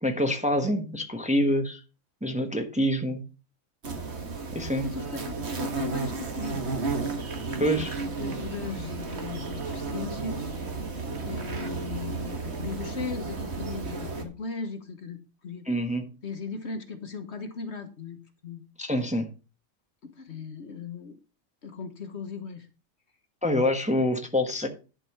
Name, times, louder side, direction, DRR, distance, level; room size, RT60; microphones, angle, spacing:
voice 1, 0.0-1.8 2.2-3.2 4.5-4.9 7.6-8.0 15.6-16.1 18.8-19.3 23.4-24.7, left 1 dB, 5° right, 5 dB, 1.2 m, -26 dB
sound 1, 3.8-14.2, right 4 dB, 50° right, 1.8 m, -33 dB
voice 2, 4.8-6.7 7.5-10.5 11.1-15.7 16.2-18.6 20.0-21.2 21.6-22.7, left 5 dB, 55° left, 8 dB, 1.4 m, -38 dB
11.0 x 5.5 x 5.5 m, 0.33 s
omnidirectional pair, 1.4 m